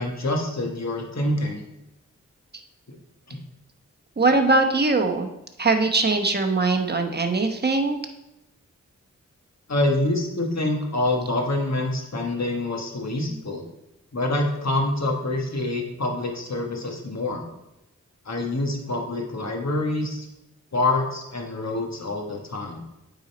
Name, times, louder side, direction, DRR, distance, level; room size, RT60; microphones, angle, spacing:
voice 1, 0.0-1.6 3.3-3.4 9.7-13.6 14.1-17.4 18.2-20.3 20.7-22.8, left 2 dB, 55° left, 2 dB, 1.4 m, -26 dB
voice 2, 4.2-5.3 5.6-8.0, right 3 dB, 30° right, 4 dB, 1.0 m, -21 dB
8.7 x 4.0 x 4.3 m, 0.90 s
cardioid pair, 45°, 32 cm